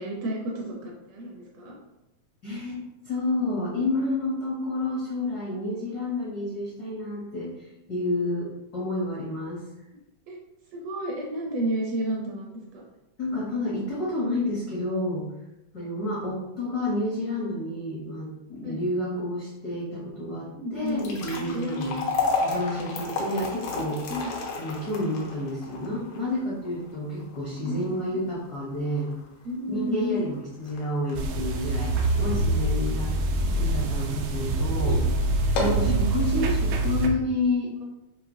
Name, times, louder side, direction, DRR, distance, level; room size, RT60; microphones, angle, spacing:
voice 1, 0.0-1.8 9.9-10.0 10.3-10.4 10.7-12.8 15.8-15.9 18.6-18.8 20.5-21.0 21.4-22.3 24.1-24.3 27.5-28.2 29.4-30.3 34.8-35.1 35.6-36.0, right 1 dB, 75° right, -1 dB, 1.6 m, -32 dB
voice 2, 2.4-7.5 7.9-9.6 13.2-15.2 15.7-22.0 22.4-24.0 24.6-29.1 29.7-33.1 33.6-35.0 35.5-37.8, left 1 dB, 70° left, -7 dB, 0.9 m, -30 dB
sound 1, 20.8-33.1 33.5-33.6 34.3-34.5 34.8-34.9 35.4-35.9, left 3 dB, 90° left, 2.3 m, -33 dB
sound 2, 31.1-37.1, right 2 dB, 90° right, 1.3 m, -25 dB
6.7 x 2.9 x 2.6 m, 0.94 s
omnidirectional pair, 3.4 m